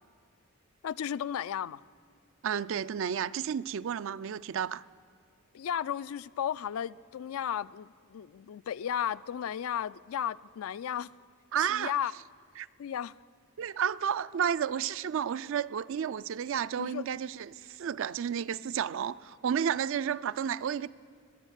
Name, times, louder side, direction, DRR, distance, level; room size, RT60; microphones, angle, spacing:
voice 1, 0.8-1.8 5.5-11.1 11.6-12.1 12.8-13.1 16.8-17.0, left 9 dB, 80° left, 0.3 m, -34 dB
voice 2, 2.4-4.8 11.5-11.9 12.6-12.7 13.6-20.9, right 8 dB, 65° right, 0.3 m, -31 dB
20.5 x 7.2 x 9.1 m
head